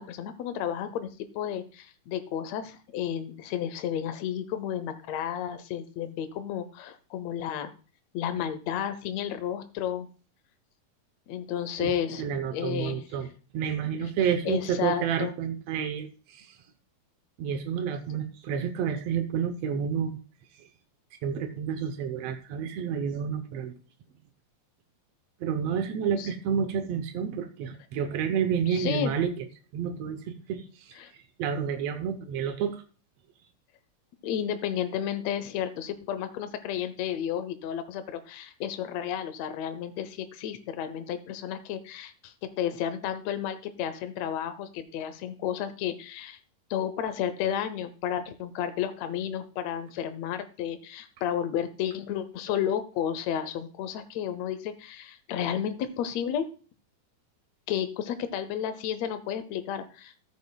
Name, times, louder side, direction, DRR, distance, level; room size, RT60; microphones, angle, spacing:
voice 1, 0.0-7.7 8.1-10.1 11.3-12.2 12.5-13.0 14.4-15.3 26.2-26.3 28.7-29.2 31.0-31.1 34.2-46.4 46.7-56.5 57.7-60.1, left 9 dB, 80° left, 10 dB, 1.5 m, -32 dB
voice 2, 11.8-13.3 13.5-16.6 17.4-20.2 20.6-20.7 21.2-23.8 25.4-29.5 29.7-31.0 31.4-32.8, right 7 dB, 85° right, 8 dB, 1.4 m, -30 dB
14.0 x 8.6 x 2.3 m, 0.36 s
omnidirectional pair, 4.0 m